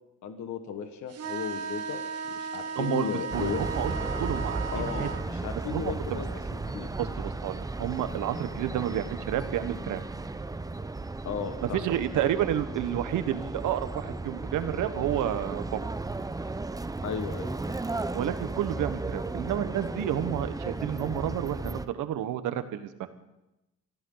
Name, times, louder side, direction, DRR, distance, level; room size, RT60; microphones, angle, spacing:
voice 1, 0.2-2.0 2.3-3.6 4.7-6.9 11.2-11.8 17.0-17.8, left 7 dB, 70° left, 7 dB, 1.6 m, -35 dB
sound 1, 1.1-5.2, right 5 dB, 55° right, 2.3 m, -36 dB
voice 2, 2.7-3.9 4.2-5.1 5.7-6.2 7.0-10.0 11.6-15.8 18.1-23.2, right 11 dB, 85° right, 10 dB, 1.3 m, -30 dB
sound 2, 3.3-21.9, right 3 dB, 10° right, 0.7 m, -35 dB
24.5 x 14.5 x 4.0 m, 0.92 s
cardioid pair, 90°, 30 cm